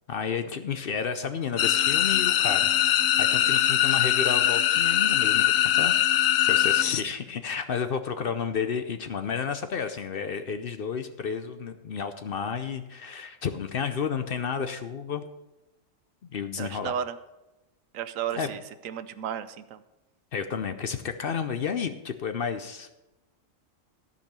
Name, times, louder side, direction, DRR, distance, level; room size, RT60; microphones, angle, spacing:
voice 1, 0.1-2.7 3.2-5.9 6.4-15.3 16.3-17.0 18.3-18.5 20.3-23.1, left 6 dB, 55° left, 9 dB, 0.7 m, -31 dB
sound 1, 1.6-7.0, left 11 dB, 85° left, 1.0 m, -22 dB
voice 2, 16.6-17.2 17.9-18.6 18.8-19.8, right 9 dB, 85° right, 12 dB, 1.1 m, -34 dB
13.5 x 5.4 x 6.7 m, 1.0 s
omnidirectional pair, 1.3 m